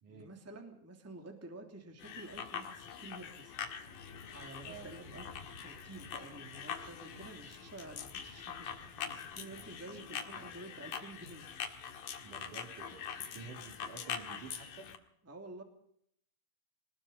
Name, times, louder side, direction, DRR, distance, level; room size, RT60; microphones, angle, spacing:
voice 1, 0.1-3.6 4.3-8.7 9.1-11.5 15.2-15.6, right 2 dB, 5° right, 4 dB, 2.2 m, -50 dB
sound 1, 2.0-15.0, left 7 dB, 70° left, 3.2 m, -44 dB
sound 2, 3.7-10.5, left 2 dB, 15° left, 2.2 m, -58 dB
voice 2, 12.2-15.0, right 5 dB, 60° right, 4 dB, 3.9 m, -51 dB
23.0 x 20.5 x 5.6 m, 0.69 s
omnidirectional pair, 4.1 m